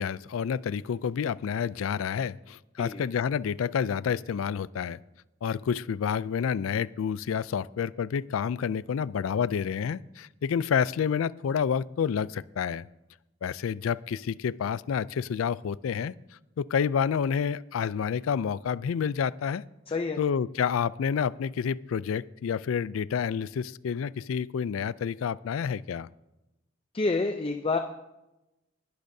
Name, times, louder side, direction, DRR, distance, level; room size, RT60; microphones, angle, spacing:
voice 1, 0.0-5.0 5.4-12.9 13.4-16.1 16.6-19.6 20.2-26.1, left 7 dB, 85° left, 20 dB, 0.4 m, -29 dB
voice 2, 19.9-20.2 26.9-27.8, left 3 dB, 25° left, 6 dB, 0.5 m, -28 dB
20.5 x 11.5 x 2.7 m, 0.96 s
head